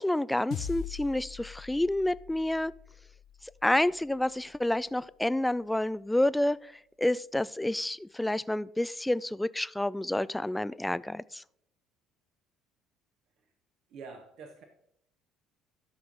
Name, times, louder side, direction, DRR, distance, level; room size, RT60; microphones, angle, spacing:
voice 1, 0.0-2.7 3.6-6.6 7.0-11.4, left 1 dB, 10° left, 0.3 m, -29 dB
sound 1, 0.5-5.1, left 9 dB, 60° left, 0.7 m, -43 dB
voice 2, 13.9-14.6, right 4 dB, 60° right, 1.2 m, -46 dB
12.5 x 6.0 x 3.9 m
hypercardioid pair, 60°, 0 cm